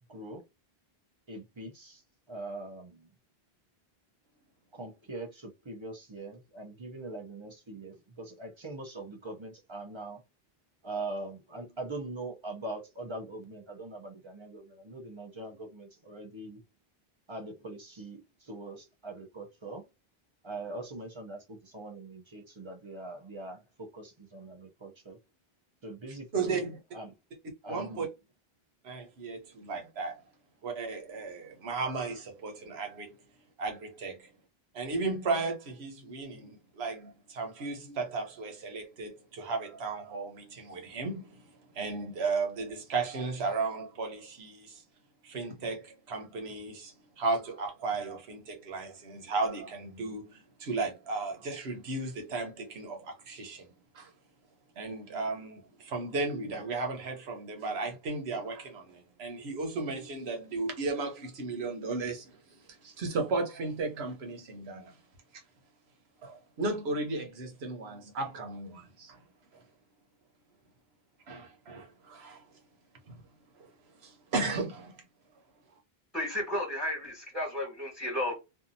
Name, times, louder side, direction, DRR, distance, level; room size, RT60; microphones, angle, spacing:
voice 1, 0.1-0.4 1.3-2.0 2.3-3.1 4.7-10.2 10.8-16.6 17.3-19.8 20.4-25.2 25.8-26.6 26.9-27.1 27.6-28.1, right 2 dB, 35° right, 0.6 m, -42 dB
voice 2, 26.1-26.8 27.7-28.1 28.8-30.2 30.6-33.2 33.6-34.3 34.7-44.8 45.2-54.1 54.8-62.4 62.7-65.0 66.2-69.2 69.5-69.6 71.3-72.4 73.1-73.2 73.6-73.7 74.0-75.0, right 3 dB, 90° right, 1.1 m, -35 dB
voice 3, 76.1-78.3, left 1 dB, ahead, 1.3 m, -33 dB
2.7 x 2.3 x 2.6 m
omnidirectional pair, 1.0 m